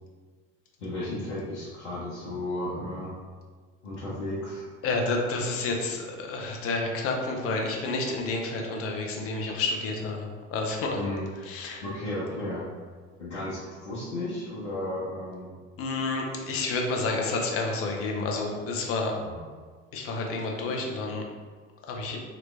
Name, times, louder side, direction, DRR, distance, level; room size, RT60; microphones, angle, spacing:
voice 1, 0.8-3.1 3.8-4.7 10.9-11.3 11.8-12.7 13.2-15.5 19.2-19.4, left 1 dB, 70° left, -8 dB, 1.1 m, -34 dB
voice 2, 4.8-11.0 11.4-11.8 15.8-19.2 19.9-21.3 21.9-22.2, left 3 dB, 40° left, 1 dB, 0.8 m, -30 dB
3.9 x 3.1 x 3.3 m, 1.5 s
figure-of-eight pair, 65°, 36 cm